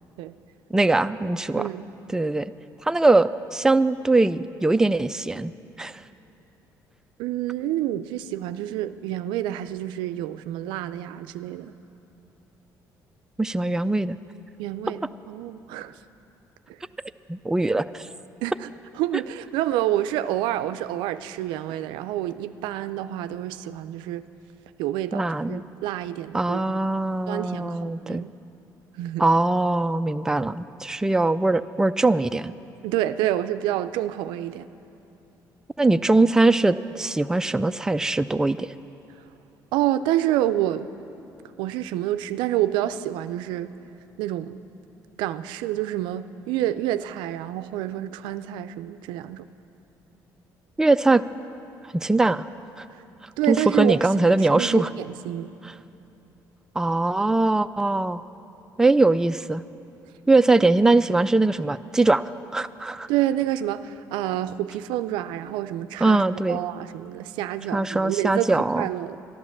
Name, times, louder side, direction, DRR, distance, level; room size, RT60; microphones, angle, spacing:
voice 1, 0.7-1.7 2.1-2.5 2.8-5.5 5.8-6.0 13.4-14.2 17.3-18.1 25.1-25.6 26.3-28.2 29.2-32.5 35.8-38.7 50.8-51.2 51.9-52.5 52.8-52.9 53.5-54.9 55.6-55.7 56.8-58.2 58.8-59.6 60.3-62.2 62.5-63.1 66.0-66.6 67.7-68.9, right 2 dB, 5° right, 11 dB, 0.4 m, -21 dB
voice 2, 7.2-11.7 14.6-15.9 16.7-16.8 18.4-18.7 19.0-24.3 24.8-26.7 27.3-28.4 29.0-29.2 32.8-34.7 39.7-40.9 41.6-43.7 44.2-44.6 45.2-49.5 52.9-53.0 53.4-55.5 63.1-66.2 66.5-69.2, right 13 dB, 85° right, 12 dB, 0.4 m, -28 dB
12.0 x 11.5 x 7.3 m, 3.0 s
supercardioid pair, 80°, 8 cm